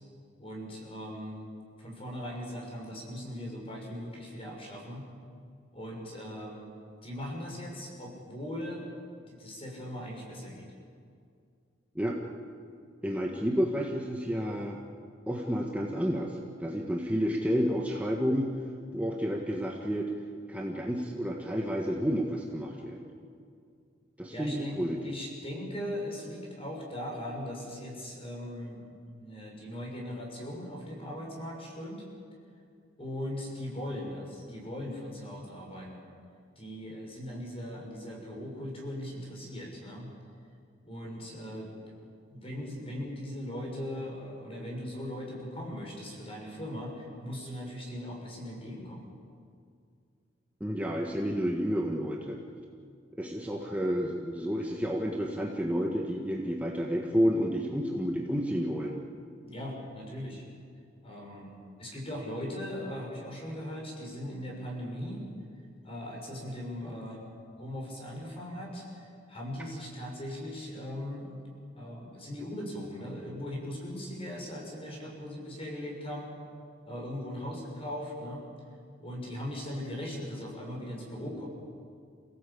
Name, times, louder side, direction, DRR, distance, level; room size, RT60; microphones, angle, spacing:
voice 1, 0.4-1.5 1.8-5.0 5.7-6.7 7.0-8.8 9.3-10.7 24.3-28.8 29.2-32.0 33.0-36.0 36.6-40.1 40.8-42.0 42.3-49.1 59.5-60.4 61.0-65.2 65.8-67.2 67.5-71.3 71.8-76.3 76.9-78.4 79.0-81.5, equal, 30° left, -1 dB, 6.4 m, -39 dB
voice 2, 13.0-14.8 15.3-18.5 18.9-20.1 20.5-23.1 24.2-25.1 50.6-52.4 53.2-59.0, equal, 5° right, -1 dB, 1.5 m, -30 dB
28.5 x 17.0 x 8.7 m, 2.3 s
head